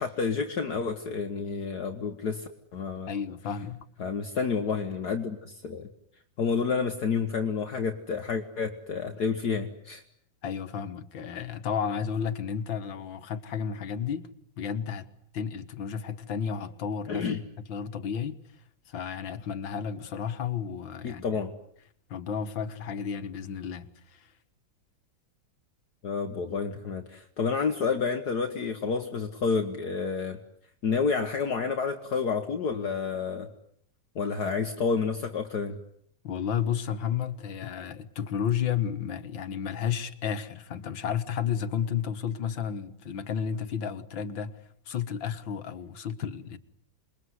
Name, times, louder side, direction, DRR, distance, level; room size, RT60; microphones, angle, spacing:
voice 1, 0.0-3.1 4.0-5.9 6.4-10.0 17.1-17.4 21.0-21.5 26.0-30.4 30.8-33.5 34.2-35.8, left 5 dB, 60° left, 2.0 m, -29 dB
voice 2, 3.1-3.9 10.4-14.3 14.6-15.1 15.3-17.3 17.7-18.4 18.9-21.4 22.1-24.3 36.2-44.6 44.9-46.6, left 8 dB, 85° left, 2.2 m, -32 dB
28.0 x 21.5 x 9.7 m
omnidirectional pair, 2.0 m